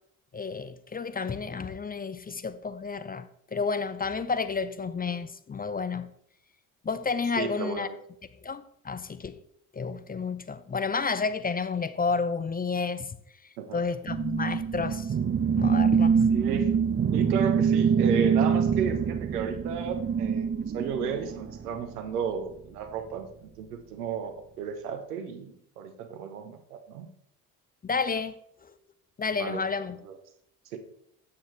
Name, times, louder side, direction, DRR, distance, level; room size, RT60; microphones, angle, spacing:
voice 1, 0.3-6.1 6.8-7.9 8.4-9.4 9.7-13.2 13.7-15.1 15.6-16.4 27.8-28.3 28.6-28.7 29.2-30.0, left 5 dB, 20° left, 0.6 m, -31 dB
voice 2, 7.4-8.0 13.6-13.8 16.3-16.7 17.1-27.1 29.4-29.6 30.0-30.2 30.7-30.8, right 6 dB, 75° right, 1.3 m, -33 dB
sound 1, 14.1-21.9, right 7 dB, 25° right, 0.7 m, -25 dB
13.0 x 8.7 x 3.3 m
figure-of-eight pair, 50°, 46 cm